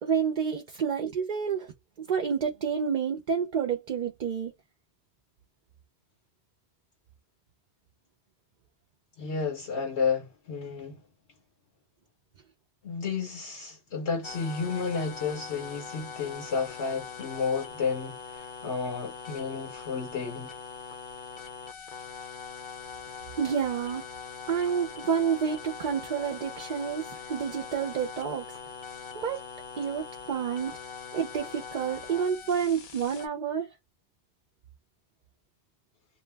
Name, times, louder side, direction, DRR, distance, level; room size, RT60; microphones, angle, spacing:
voice 1, 0.0-1.7 2.0-4.5 23.4-24.1 24.5-28.5 29.1-29.4 29.8-30.8 31.1-33.7, right 7 dB, 55° right, 0.6 m, -29 dB
voice 2, 9.2-11.0 12.8-20.6, left 5 dB, 85° left, 1.2 m, -32 dB
sound 1, 14.2-33.3, left 6 dB, 55° left, 0.7 m, -42 dB
2.6 x 2.1 x 3.2 m
omnidirectional pair, 1.1 m